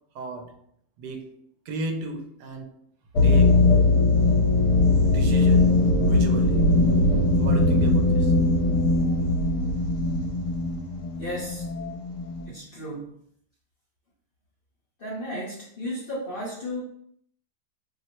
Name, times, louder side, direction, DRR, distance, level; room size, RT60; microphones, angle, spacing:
voice 1, 0.1-0.5 1.0-1.3 1.7-2.7 3.2-3.7 5.0-6.7 7.4-8.3, right 2 dB, 80° right, 4 dB, 1.2 m, -35 dB
sound 1, 3.1-12.5, left 2 dB, 70° left, 1.2 m, -20 dB
voice 2, 11.2-11.7 12.5-13.1 15.0-16.8, equal, 45° left, -7 dB, 0.8 m, -34 dB
3.0 x 2.0 x 4.1 m, 0.68 s
omnidirectional pair, 1.8 m